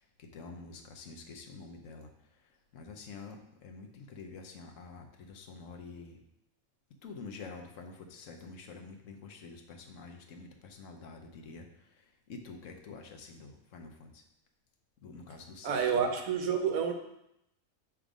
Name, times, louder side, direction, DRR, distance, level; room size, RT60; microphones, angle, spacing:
voice 1, 0.0-6.2 7.0-14.2 15.0-16.0, left 4 dB, 70° left, 3 dB, 1.1 m, -48 dB
voice 2, 15.6-16.9, right 6 dB, 85° right, 4 dB, 1.2 m, -29 dB
6.5 x 3.5 x 5.0 m, 0.82 s
omnidirectional pair, 1.4 m